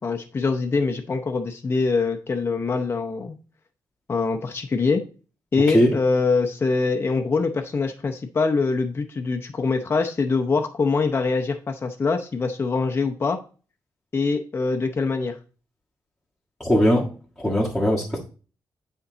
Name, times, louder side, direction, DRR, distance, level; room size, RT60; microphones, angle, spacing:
voice 1, 0.0-3.4 4.1-5.0 5.5-13.4 14.1-15.4, left 4 dB, 30° left, 4 dB, 0.7 m, -24 dB
voice 2, 16.6-17.1 17.4-18.2, equal, ahead, -6 dB, 1.6 m, -20 dB
8.5 x 4.5 x 3.9 m, 0.36 s
cardioid pair, 125°, 8 cm